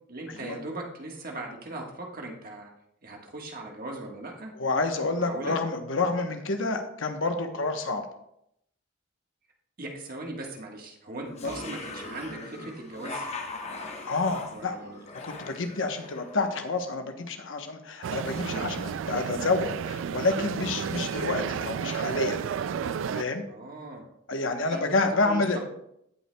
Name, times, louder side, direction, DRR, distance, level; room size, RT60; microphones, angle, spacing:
voice 1, 0.1-2.7 3.0-4.5 5.2-5.6 9.8-13.3 14.5-15.0 23.5-24.1 24.7-24.8 25.2-25.6, right 2 dB, 50° right, 1 dB, 1.4 m, -39 dB
voice 2, 4.6-8.0 11.4-11.5 14.0-14.8 15.1-22.4 23.1-23.4 24.3-25.6, left 3 dB, 75° left, 6 dB, 1.0 m, -28 dB
sound 1, 11.3-16.8, left 3 dB, 35° left, 1.0 m, -40 dB
sound 2, 18.0-23.2, right 7 dB, 70° right, 0.3 m, -32 dB
16.0 x 5.6 x 2.2 m, 0.77 s
head